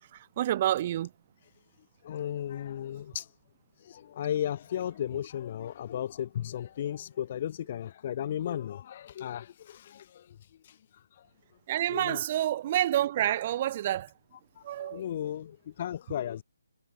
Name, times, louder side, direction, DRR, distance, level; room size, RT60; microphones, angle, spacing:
voice 1, 0.1-1.1 11.7-14.1 14.6-15.0, right 12 dB, 25° right, 3.9 m, -28 dB
voice 2, 2.0-3.3 3.8-10.3 10.7-10.8 11.9-12.2 14.8-16.4, left 10 dB, 30° left, 2.3 m, -35 dB
hypercardioid pair, 170°, 0 cm